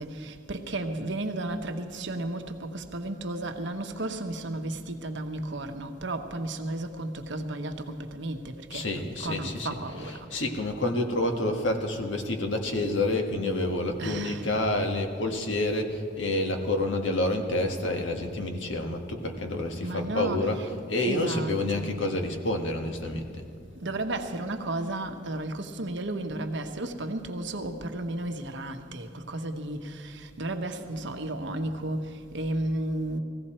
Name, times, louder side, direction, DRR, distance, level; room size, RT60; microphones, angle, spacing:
voice 1, 0.0-10.3 14.0-14.5 19.8-20.7 21.1-21.8 23.8-33.2, right 2 dB, 70° right, 1.1 m, -33 dB
voice 2, 8.7-23.3, left 1 dB, 75° left, 1.5 m, -28 dB
19.5 x 15.5 x 4.4 m
head